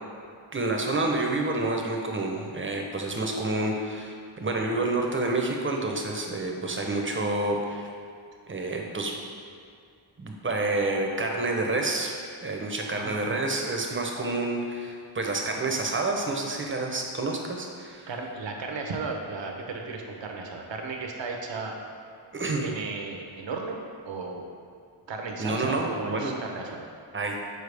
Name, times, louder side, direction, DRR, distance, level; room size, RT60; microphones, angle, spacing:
voice 1, 0.5-7.9 8.5-9.2 10.2-12.2 12.4-18.1 22.3-22.7 25.4-26.3 27.1-27.4, right 2 dB, 25° right, 1 dB, 0.8 m, -28 dB
voice 2, 12.9-13.4 18.1-21.8 22.6-23.8 24.0-24.5 25.1-26.9, right 4 dB, 60° right, 1 dB, 0.8 m, -35 dB
6.6 x 4.5 x 3.4 m, 2.3 s
wide cardioid pair, 85°, 49 cm